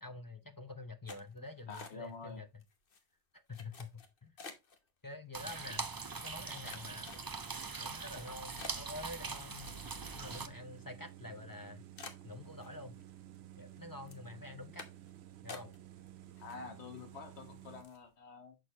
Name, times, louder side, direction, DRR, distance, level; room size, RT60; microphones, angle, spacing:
voice 1, 0.0-2.5 3.5-4.3 5.0-5.8 6.2-7.1 7.8-9.8 10.1-11.8 12.2-13.0 13.6-14.9 15.4-15.7, left 2 dB, 20° left, 0.6 m, -47 dB
sound 1, 1.1-2.3 2.6-3.0 3.5-4.8 5.5-5.6 6.1-7.6 8.1-8.2 8.6-10.8 11.1-11.2 11.5-11.6 12.0-13.0 13.3-13.8 14.1-14.3 14.8-15.1 15.5-16.1 16.4-17.0 17.4-17.5 17.8-18.1, left 4 dB, 50° left, 1.2 m, -51 dB
voice 2, 1.7-2.4 16.4-18.6, left 5 dB, 65° left, 1.6 m, -48 dB
sound 2, 5.3-10.5, right 4 dB, 40° right, 0.3 m, -42 dB
sound 3, 9.6-17.8, right 11 dB, 70° right, 0.9 m, -53 dB
6.4 x 6.4 x 3.0 m
omnidirectional pair, 1.2 m